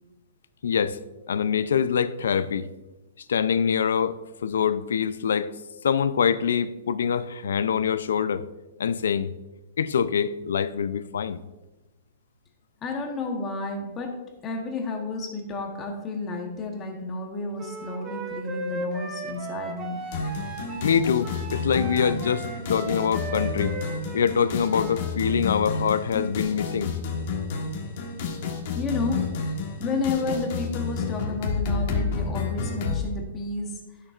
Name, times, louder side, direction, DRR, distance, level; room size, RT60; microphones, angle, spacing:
voice 1, 0.6-1.0 1.3-2.7 3.3-5.5 5.8-8.4 8.8-9.3 9.8-11.4 20.8-23.8 24.1-27.0, left 7 dB, 90° left, 0.4 m, -24 dB
voice 2, 12.8-20.0 28.7-29.3 29.8-33.8, left 3 dB, 15° left, 1.0 m, -31 dB
Wind instrument woodwind instrument, 17.6-25.1, right 3 dB, 15° right, 0.9 m, -36 dB
sound 1, 20.1-33.0, left 4 dB, 45° left, 1.3 m, -30 dB
12.0 x 6.5 x 2.5 m
hypercardioid pair, 170°, 0 cm